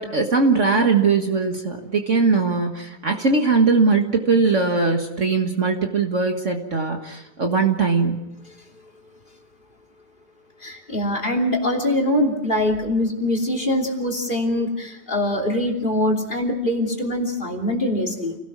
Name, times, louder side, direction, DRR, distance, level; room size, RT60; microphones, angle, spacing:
voice 1, 0.0-8.2, right 4 dB, 45° right, 3 dB, 1.9 m, -20 dB
voice 2, 10.6-18.4, left 1 dB, 30° left, 4 dB, 3.2 m, -23 dB
28.5 x 17.5 x 6.1 m, 0.89 s
omnidirectional pair, 1.9 m